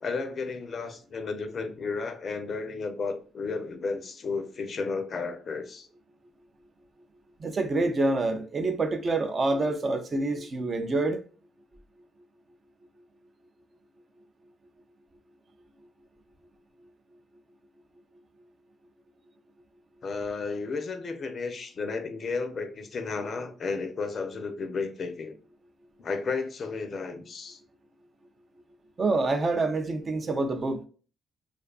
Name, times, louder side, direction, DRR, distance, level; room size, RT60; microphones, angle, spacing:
voice 1, 0.0-5.9 20.0-25.4 26.0-27.6, left 4 dB, 50° left, 0.5 m, -33 dB
voice 2, 7.4-11.2 29.0-30.8, right 2 dB, 40° right, 0.4 m, -27 dB
2.5 x 2.3 x 2.3 m
cardioid pair, 90°, 0 cm